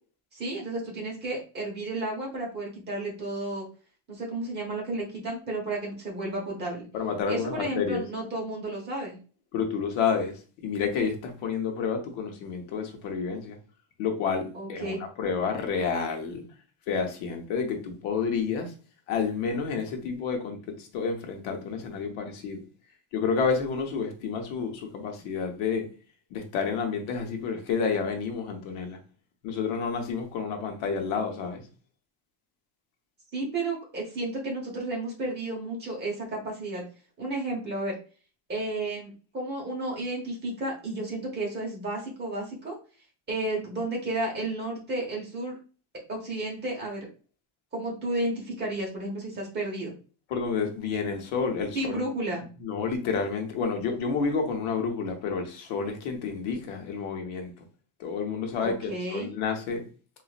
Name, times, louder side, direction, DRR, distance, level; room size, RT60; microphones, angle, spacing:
voice 1, 0.3-3.7 4.1-6.8 7.3-9.2 14.5-15.0 33.3-36.8 37.2-37.9 38.5-42.7 43.3-45.6 46.1-47.1 47.7-49.9 51.7-52.4 58.6-59.3, right 2 dB, 20° right, 1.0 m, -32 dB
voice 2, 6.9-8.0 9.5-13.6 14.0-16.4 16.9-18.7 19.1-22.6 23.1-25.9 26.3-29.0 29.4-31.6 50.3-52.0 52.6-57.5 58.0-59.8, left 5 dB, 85° left, 1.0 m, -30 dB
4.0 x 2.5 x 2.4 m
cardioid pair, 175°, 48 cm